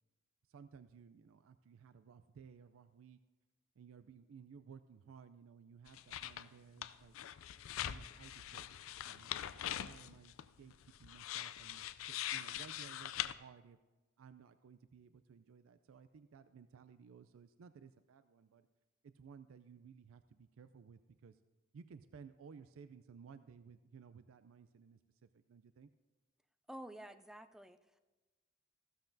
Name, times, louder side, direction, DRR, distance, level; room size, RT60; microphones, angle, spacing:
voice 1, 0.5-3.2 3.8-7.2 7.8-10.7 11.0-13.8 14.2-18.7 19.0-21.4 21.7-25.9, right 6 dB, 85° right, 12 dB, 0.4 m, -58 dB
sound 1, 5.9-6.5 6.8-13.3, left 11 dB, 90° left, 0.4 m, -43 dB
voice 2, 26.7-28.0, right 1 dB, ahead, 9 dB, 0.3 m, -51 dB
15.5 x 13.0 x 2.6 m, 1.2 s
head